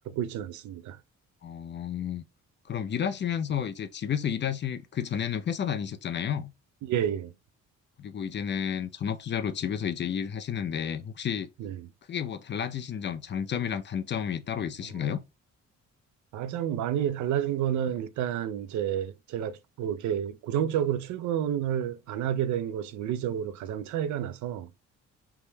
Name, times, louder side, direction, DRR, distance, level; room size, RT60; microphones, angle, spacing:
voice 1, 0.0-1.0 6.8-7.3 11.6-11.9 14.9-15.1 16.3-24.7, right 10 dB, 80° right, 0.5 m, -30 dB
voice 2, 1.4-2.2 2.7-6.5 8.0-11.5 12.1-15.2, left 8 dB, 40° left, 0.6 m, -31 dB
3.5 x 3.2 x 2.8 m
cardioid pair, 125°, 29 cm